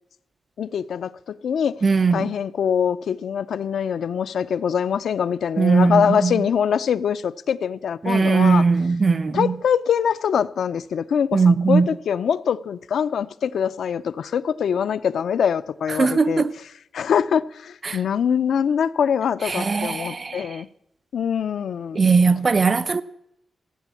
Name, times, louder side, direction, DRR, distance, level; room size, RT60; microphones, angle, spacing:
voice 1, 0.6-1.8 2.1-8.6 9.3-16.4 16.9-20.7 21.1-22.0, left 7 dB, 85° left, 0.5 m, -23 dB
voice 2, 1.8-2.3 5.6-6.4 8.0-9.5 11.3-11.9 16.0-16.5 17.8-18.0 19.4-20.5 21.9-23.0, right 4 dB, 35° right, 0.5 m, -19 dB
15.0 x 9.2 x 8.3 m
wide cardioid pair, 135°, 0 cm